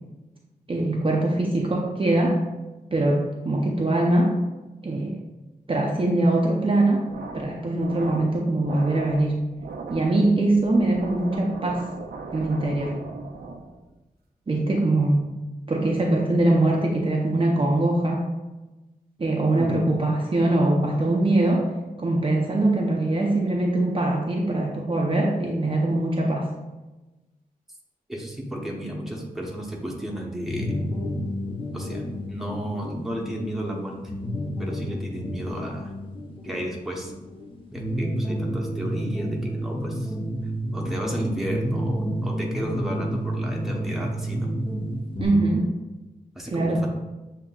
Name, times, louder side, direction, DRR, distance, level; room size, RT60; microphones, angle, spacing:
voice 1, 0.7-2.4 2.9-4.3 4.8-5.2 5.7-9.4 9.9-11.8 12.3-13.0 14.5-15.3 15.7-18.2 19.2-21.7 22.0-26.5 45.2-45.7 46.5-46.9, right 2 dB, 35° right, -1 dB, 0.6 m, -22 dB
sound 1, 7.0-13.9, right 4 dB, 80° right, 0.5 m, -39 dB
voice 2, 28.1-30.8 31.7-34.0 34.6-35.9 36.4-37.1 37.7-40.1 40.7-44.5 46.3-46.9, right 1 dB, ahead, -2 dB, 0.9 m, -33 dB
sound 2, 30.5-45.3, equal, 35° left, 0.8 m, -30 dB
7.2 x 2.7 x 2.3 m, 1.1 s
wide cardioid pair, 85°, 16 cm